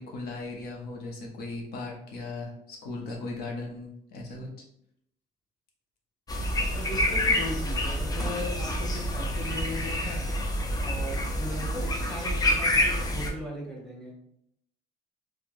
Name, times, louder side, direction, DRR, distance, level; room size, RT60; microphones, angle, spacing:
voice 1, 0.0-4.5, left 3 dB, 65° left, -1 dB, 0.6 m, -37 dB
sound 1, 6.3-13.3, left 1 dB, 20° left, 0.4 m, -27 dB
voice 2, 6.7-10.3 10.8-14.1, left 1 dB, 5° left, -4 dB, 1.0 m, -38 dB
3.1 x 2.1 x 2.5 m, 0.76 s
cardioid pair, 110°, 17 cm